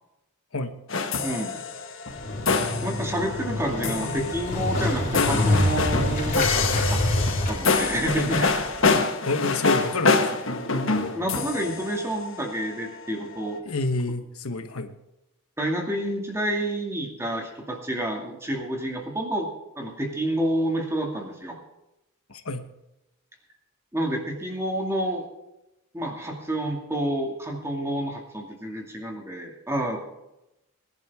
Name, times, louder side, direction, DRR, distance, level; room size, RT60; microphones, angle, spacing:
sound 1, 0.9-12.7, left 4 dB, 60° left, 1.5 m, -26 dB
voice 1, 1.2-1.6 2.8-7.0 7.5-8.6 11.1-13.6 15.6-19.5 19.8-21.6 23.9-25.2 25.9-30.0, right 1 dB, 10° right, 1 dB, 2.3 m, -29 dB
Motorcycle, 2.1-8.9, left 1 dB, 40° left, 4.7 m, -27 dB
voice 2, 8.9-10.5 13.6-14.9 22.3-22.6, left 2 dB, 80° left, 7 dB, 1.2 m, -29 dB
21.5 x 11.5 x 3.6 m, 0.92 s
head